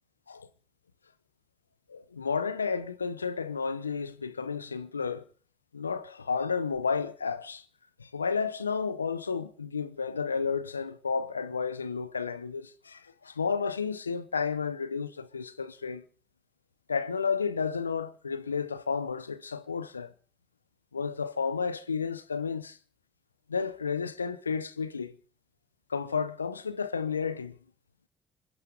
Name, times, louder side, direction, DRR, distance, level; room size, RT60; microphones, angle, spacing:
voice 1, 1.9-5.2 5.7-7.6 8.0-16.0 16.9-20.1 20.9-22.8 23.5-25.1 25.9-27.6, left 5 dB, 90° left, 0.6 m, -32 dB
26.5 x 9.5 x 5.0 m
figure-of-eight pair, 45°, 0 cm